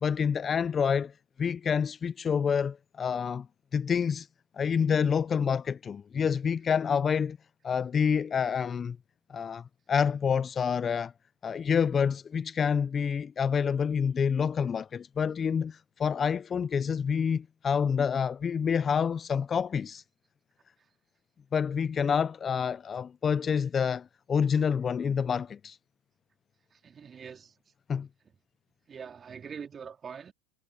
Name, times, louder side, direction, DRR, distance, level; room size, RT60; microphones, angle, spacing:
voice 1, 0.0-1.1 1.4-3.5 3.7-4.3 4.5-7.4 7.6-9.0 9.3-11.1 11.4-20.0 21.5-25.8 27.9-28.1, left 7 dB, 25° left, 0.5 m, -28 dB
voice 2, 26.7-27.5 28.9-30.3, right 6 dB, 25° right, 3.7 m, -43 dB
hypercardioid pair, 105°, 0 cm